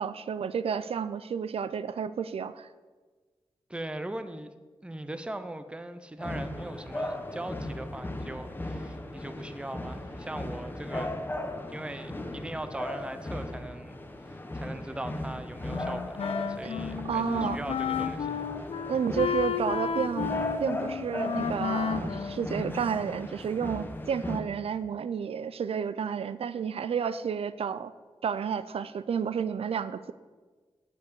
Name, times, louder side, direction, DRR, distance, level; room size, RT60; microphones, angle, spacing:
voice 1, 0.0-2.7 16.6-16.7 17.0-17.6 18.9-20.3 20.6-27.9 28.2-30.1, right 7 dB, 80° right, 14 dB, 0.4 m, -31 dB
voice 2, 3.7-4.5 4.8-11.1 11.7-13.9 14.2-18.4, right 1 dB, 10° right, 10 dB, 0.6 m, -40 dB
sound 1, 6.2-24.4, left 1 dB, 20° left, 0.8 m, -37 dB
Wind instrument woodwind instrument, 15.7-23.1, left 7 dB, 85° left, 0.5 m, -33 dB
8.4 x 8.1 x 6.7 m, 1.4 s
wide cardioid pair, 155°, 10 cm